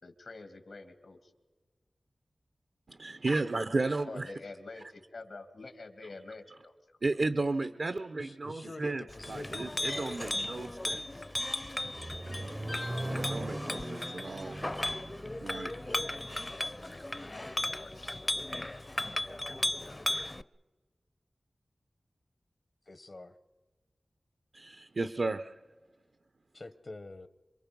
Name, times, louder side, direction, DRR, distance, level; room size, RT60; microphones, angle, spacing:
voice 1, 0.0-1.3 4.1-6.8 12.9-13.1 16.4-18.8 19.7-20.2, left 3 dB, 85° left, 7 dB, 2.4 m, -48 dB
voice 2, 2.9-4.3 7.0-11.0 13.0-14.6 15.4-16.0 24.5-25.5, right 3 dB, 65° right, 11 dB, 0.7 m, -34 dB
voice 3, 8.2-9.7 22.9-23.4 26.5-27.3, left 2 dB, 55° left, 12 dB, 0.9 m, -46 dB
Chink clink, 9.1-20.4, left 1 dB, 25° left, 0.6 m, -36 dB
Accelerating revving vroom, 11.3-17.4, right 1 dB, 30° right, 0.6 m, -41 dB
27.0 x 24.0 x 5.3 m, 1.3 s
wide cardioid pair, 70°, 0 cm